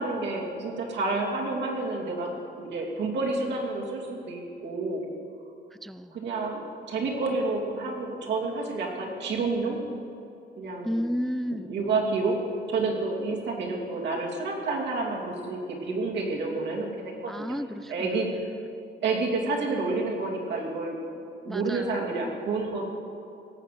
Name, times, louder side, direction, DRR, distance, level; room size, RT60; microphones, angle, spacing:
voice 1, 0.0-5.0 6.1-9.8 10.6-11.0 11.7-12.4 12.7-17.6 17.9-18.3 19.0-21.0 21.4-22.8, right 3 dB, 80° right, -2 dB, 2.8 m, -29 dB
voice 2, 5.8-6.1 10.8-11.7 17.3-18.2 21.5-22.0, equal, ahead, 12 dB, 0.3 m, -32 dB
17.5 x 7.6 x 6.9 m, 2.6 s
cardioid pair, 105°, 18 cm